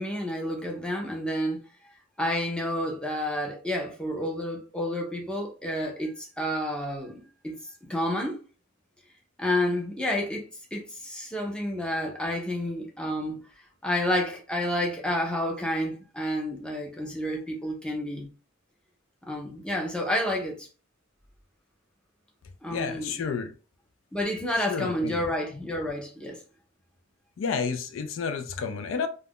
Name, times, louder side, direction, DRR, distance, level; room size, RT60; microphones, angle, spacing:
voice 1, 0.0-1.6 2.2-7.2 7.4-7.5 7.8-8.4 9.4-10.4 10.7-13.4 13.8-18.3 19.2-20.7 22.6-23.1 24.1-26.4, left 1 dB, 5° left, 0.6 m, -30 dB
voice 2, 22.7-23.5 24.6-25.3 27.4-29.1, left 5 dB, 70° left, 0.3 m, -31 dB
2.4 x 2.1 x 3.5 m
head